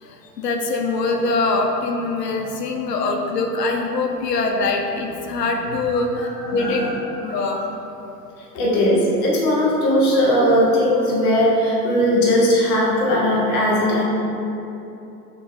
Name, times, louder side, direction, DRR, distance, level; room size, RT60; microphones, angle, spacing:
voice 1, 0.0-6.9 7.2-7.6, left 3 dB, 75° left, 3 dB, 0.6 m, -23 dB
voice 2, 6.5-7.0 7.2-7.6 8.5-14.0, equal, 20° left, -5 dB, 0.3 m, -19 dB
6.0 x 2.9 x 2.4 m, 2.9 s
figure-of-eight pair, 90°, 49 cm